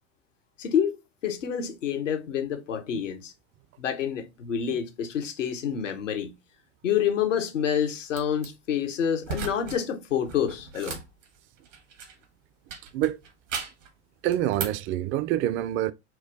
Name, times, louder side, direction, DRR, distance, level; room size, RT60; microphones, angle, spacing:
voice 1, 0.6-1.0 1.2-3.3 3.8-6.3 6.8-11.0, left 8 dB, 85° left, 1.0 m, -28 dB
sound 1, 8.1-8.5 9.2-9.8 10.1-12.3 12.7-13.9 14.3-14.9, right 5 dB, 85° right, 1.4 m, -36 dB
voice 2, 14.2-15.9, right 13 dB, 35° right, 0.4 m, -26 dB
4.5 x 2.3 x 4.6 m
hypercardioid pair, 85°, 36 cm